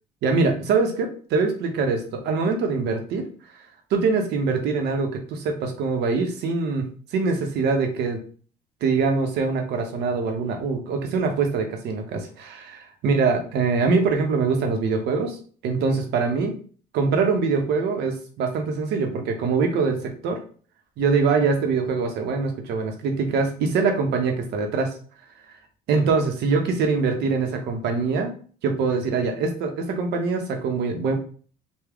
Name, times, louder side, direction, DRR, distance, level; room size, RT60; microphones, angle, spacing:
voice 1, 0.2-3.3 3.9-8.2 8.8-16.5 16.9-20.4 21.0-24.9 25.5-25.6 25.9-28.4 28.6-31.2, right 4 dB, 75° right, 4 dB, 0.8 m, -23 dB
3.5 x 2.2 x 3.4 m, 0.43 s
cardioid pair, 110°, 17 cm